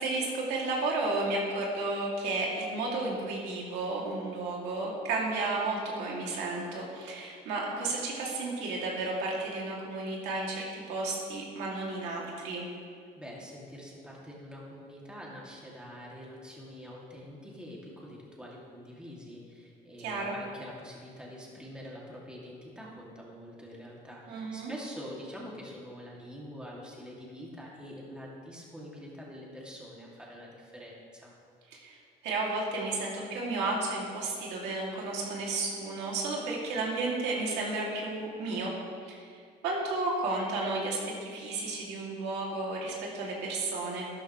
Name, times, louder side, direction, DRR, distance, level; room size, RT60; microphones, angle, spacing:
voice 1, 0.0-12.6 20.0-20.4 24.3-24.7 31.7-38.7 39.0-39.2 39.6-44.1, right 2 dB, 90° right, -3 dB, 2.6 m, -32 dB
voice 2, 13.1-31.3, equal, 5° right, -4 dB, 2.4 m, -45 dB
12.5 x 11.5 x 3.2 m, 2.2 s
cardioid pair, 110°, 17 cm